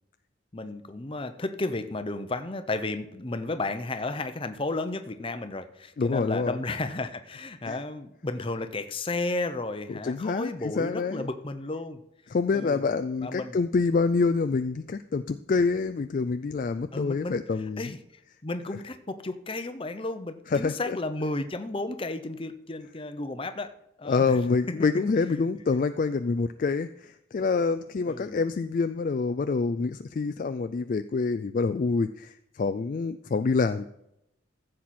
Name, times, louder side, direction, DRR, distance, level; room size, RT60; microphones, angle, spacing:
voice 1, 0.5-12.0 12.5-12.9 13.2-13.6 16.9-17.4 17.8-18.0 18.4-24.4 24.7-24.8 28.1-28.4, left 2 dB, 25° left, 9 dB, 0.7 m, -33 dB
voice 2, 6.0-6.6 7.6-7.8 9.9-11.3 12.3-17.9 20.5-21.0 24.1-33.9, left 4 dB, 45° left, 10 dB, 0.3 m, -26 dB
14.5 x 7.6 x 4.3 m, 0.82 s
head